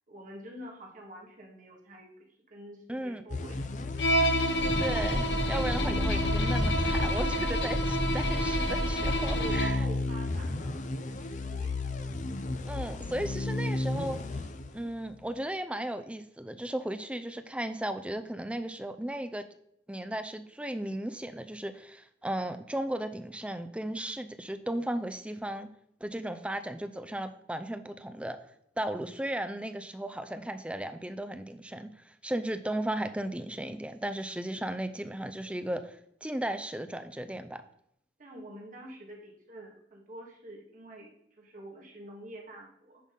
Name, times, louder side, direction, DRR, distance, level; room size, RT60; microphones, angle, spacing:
voice 1, 0.1-3.7 9.2-11.8 38.2-43.0, right 1 dB, 45° right, -2 dB, 1.9 m, -47 dB
voice 2, 2.9-3.2 4.8-9.8 12.7-14.2 14.7-19.4 19.9-25.7 26.0-28.4 28.8-37.6, right 1 dB, 5° right, 9 dB, 0.5 m, -35 dB
sound 1, 3.3-15.2, left 2 dB, 45° left, 0.6 m, -33 dB
Bowed string instrument, 4.0-9.9, equal, 70° left, 1.1 m, -30 dB
sound 2, 4.6-9.6, equal, 10° left, 2.3 m, -32 dB
10.5 x 3.9 x 5.3 m, 0.74 s
head